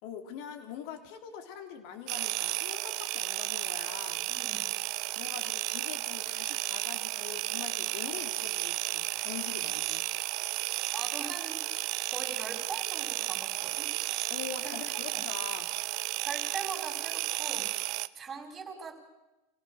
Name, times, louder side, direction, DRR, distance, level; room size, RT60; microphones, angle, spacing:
voice 1, 0.0-4.3 5.1-10.0 14.3-15.7, left 8 dB, 55° left, 7 dB, 2.9 m, -43 dB
sound 1, 2.1-18.1, right 20 dB, 55° right, 0.6 m, -33 dB
voice 2, 4.3-4.7 10.9-11.6 12.1-13.9 14.6-14.8 15.1-15.2 16.2-17.7 18.1-19.0, right 5 dB, 25° right, 5 dB, 4.9 m, -41 dB
24.5 x 17.0 x 6.5 m, 1.0 s
hypercardioid pair, 95°, 0 cm